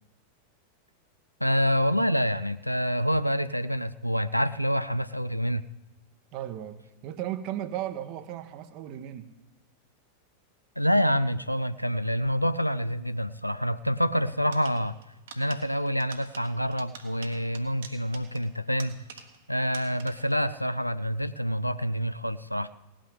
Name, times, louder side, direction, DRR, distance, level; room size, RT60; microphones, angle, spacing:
voice 1, 1.4-5.6 10.8-15.0 15.4-19.1 19.5-22.7, equal, 90° left, 14 dB, 0.4 m, -27 dB
voice 2, 6.3-9.3, right 12 dB, 40° right, 11 dB, 1.0 m, -36 dB
sound 1, 14.5-19.5 19.7-20.4, right 6 dB, 60° right, 1.5 m, -48 dB
18.0 x 6.2 x 8.1 m, 1.1 s
figure-of-eight pair, 90°, 0 cm